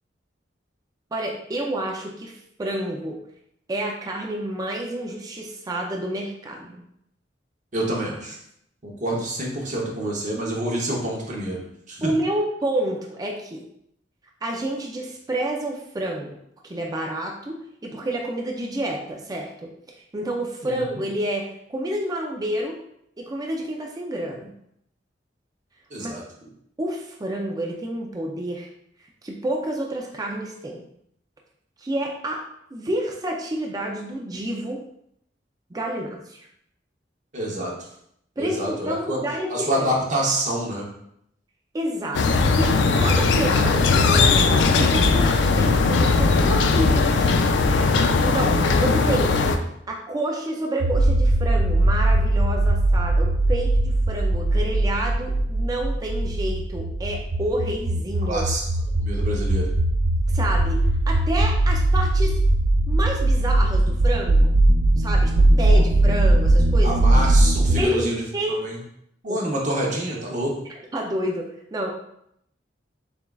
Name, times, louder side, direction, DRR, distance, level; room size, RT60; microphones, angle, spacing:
voice 1, 1.1-3.2 3.7-6.8 12.0-13.6 14.4-16.4 16.7-19.7 20.1-21.4 21.7-22.8 23.2-24.5 26.0-26.1 26.8-28.7 29.2-30.8 31.8-32.4 32.7-34.8 35.7-36.5 38.4-39.5 39.8-39.9 41.7-47.7 48.2-49.4 49.9-58.4 60.3-60.8 61.1-62.4 62.9-64.6 65.0-65.3 65.6-67.0 67.8-68.1 68.3-68.6 69.3-69.4 70.9-71.9, right 1 dB, 20° right, 0 dB, 0.4 m, -29 dB
voice 2, 7.7-8.4 8.8-11.6 11.9-12.1 20.6-21.0 25.9-26.2 37.3-37.7 38.4-39.2 39.5-40.9 58.3-58.6 59.0-59.7 65.7-65.8 66.8-68.8 69.2-70.6, right 1 dB, 45° right, -2 dB, 0.8 m, -27 dB
sound 1, 42.1-49.6, left 4 dB, 70° left, 0.4 m, -19 dB
sound 2, 50.8-67.8, right 1 dB, 90° right, 0.4 m, -20 dB
6.9 x 2.3 x 2.3 m, 0.74 s
head